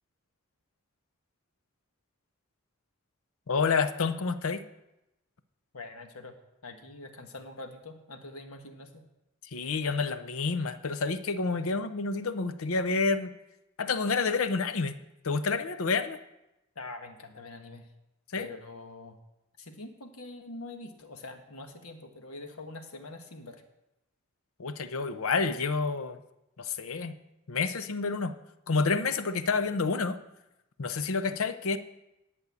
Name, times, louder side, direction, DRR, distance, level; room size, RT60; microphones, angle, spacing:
voice 1, 3.5-4.6 9.5-13.3 13.8-14.9 15.2-16.2 18.3-18.5 24.6-26.2 26.6-27.1 27.5-28.3 28.7-30.2 30.8-31.8, left 4 dB, 70° left, 10 dB, 0.7 m, -29 dB
voice 2, 5.7-6.4 6.6-9.0 16.7-17.9 18.4-19.2 19.6-23.6, left 2 dB, 85° left, 5 dB, 1.4 m, -44 dB
11.0 x 5.4 x 8.3 m, 0.91 s
head